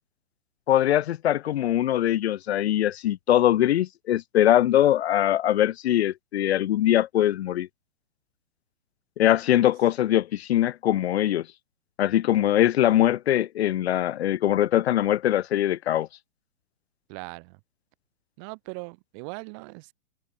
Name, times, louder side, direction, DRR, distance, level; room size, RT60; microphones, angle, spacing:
voice 1, 0.7-7.7 9.2-11.5 12.0-16.1, left 12 dB, 55° left, 0.6 m, -22 dB
voice 2, 17.1-17.6 18.4-19.9, right 37 dB, 25° right, 0.6 m, -39 dB
open air
figure-of-eight pair, 120°, 40 cm